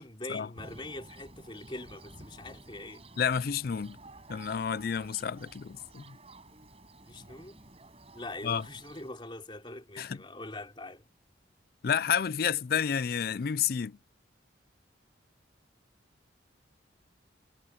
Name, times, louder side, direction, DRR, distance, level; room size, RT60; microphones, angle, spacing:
voice 1, 0.0-3.1 7.1-7.6 8.1-11.0, left 2 dB, 25° left, 3.7 m, -43 dB
Thunder, 0.6-9.1, right 2 dB, 30° right, 6.5 m, -52 dB
voice 2, 3.2-4.0 4.3-6.2 8.4-8.7 10.0-10.2 11.8-14.0, left 7 dB, 50° left, 0.4 m, -30 dB
head